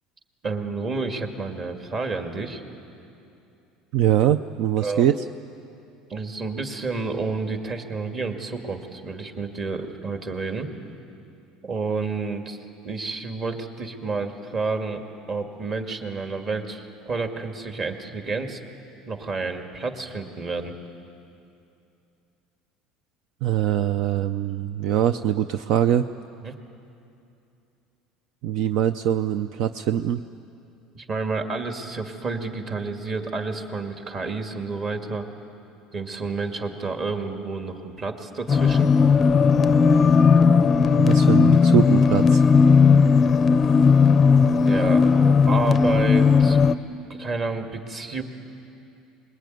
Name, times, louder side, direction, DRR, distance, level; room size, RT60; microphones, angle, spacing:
voice 1, 0.4-2.6 4.8-5.1 6.1-10.7 11.6-12.6 12.8-18.6 19.1-20.8 26.4-26.5 30.9-35.3 35.9-38.9 44.6-46.8 47.1-48.2, right 3 dB, 35° right, 5 dB, 2.2 m, -30 dB
voice 2, 3.9-5.1 23.4-26.1 28.4-30.2 41.0-42.4, right 11 dB, 65° right, 11 dB, 0.6 m, -22 dB
sound 1, 38.5-46.7, left 5 dB, 25° left, 0.5 m, -16 dB
24.5 x 21.5 x 9.3 m, 2.7 s
cardioid pair, 135°, 0 cm